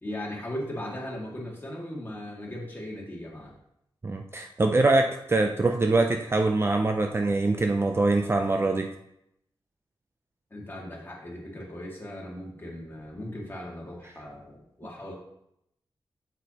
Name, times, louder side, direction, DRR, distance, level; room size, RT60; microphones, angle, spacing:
voice 1, 0.0-3.5 10.5-15.1, left 1 dB, 25° left, -4 dB, 2.0 m, -38 dB
voice 2, 4.0-8.9, right 2 dB, 25° right, 4 dB, 0.4 m, -24 dB
7.7 x 7.2 x 2.9 m, 0.79 s
wide cardioid pair, 150°, 9 cm